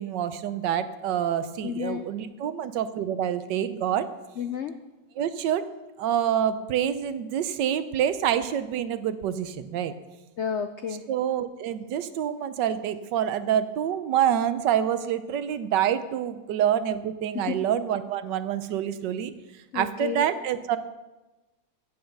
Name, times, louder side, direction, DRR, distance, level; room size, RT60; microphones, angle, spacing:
voice 1, 0.0-4.1 5.2-5.6 6.0-9.9 11.1-19.3 19.7-20.8, right 9 dB, 80° right, 12 dB, 1.4 m, -27 dB
voice 2, 1.6-2.1 4.4-4.8 10.4-11.0 17.3-17.6 19.7-20.2, left 7 dB, 85° left, 9 dB, 0.6 m, -31 dB
16.0 x 5.5 x 6.6 m, 1.1 s
omnidirectional pair, 1.9 m